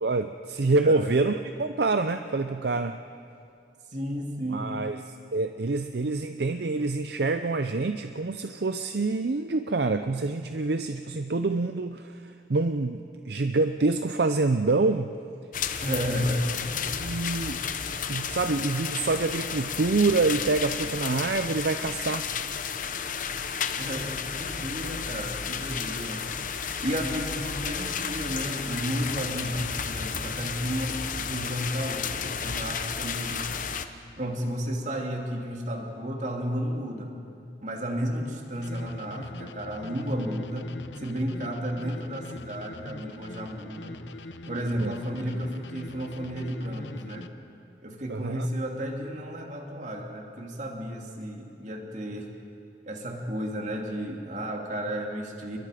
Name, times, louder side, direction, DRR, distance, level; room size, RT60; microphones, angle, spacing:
voice 1, 0.0-3.0 4.5-5.0 5.3-15.1 16.9-17.6 18.1-22.3 44.7-45.0 48.1-48.5, right 3 dB, 65° right, 8 dB, 0.6 m, -26 dB
voice 2, 3.9-4.7 15.8-16.7 23.8-26.2 26.8-33.5 34.2-37.1 37.6-44.0 44.5-47.3 47.8-52.3 52.9-55.6, equal, 40° right, 1 dB, 2.7 m, -32 dB
sound 1, 15.5-33.8, left 6 dB, 45° left, 0.9 m, -32 dB
sound 2, 38.5-47.3, left 2 dB, 80° left, 0.9 m, -43 dB
29.5 x 22.5 x 5.1 m, 2.5 s
head